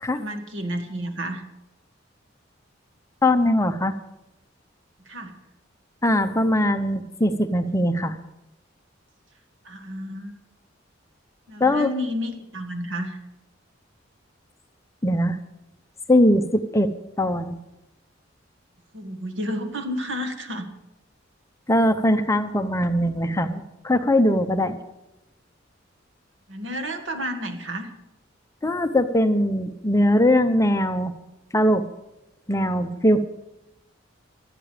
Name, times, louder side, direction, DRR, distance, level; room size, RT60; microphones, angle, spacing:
voice 1, 0.1-1.4 5.1-5.3 9.6-10.3 11.5-13.2 18.9-20.7 26.5-27.9, equal, 70° right, 7 dB, 1.9 m, -31 dB
voice 2, 3.2-3.9 6.0-8.2 11.6-11.9 15.0-15.4 16.1-16.9 17.2-17.6 21.7-24.8 28.6-31.1 31.5-31.8 32.5-33.3, left 1 dB, 15° left, 8 dB, 0.8 m, -21 dB
19.0 x 12.5 x 5.1 m, 0.92 s
head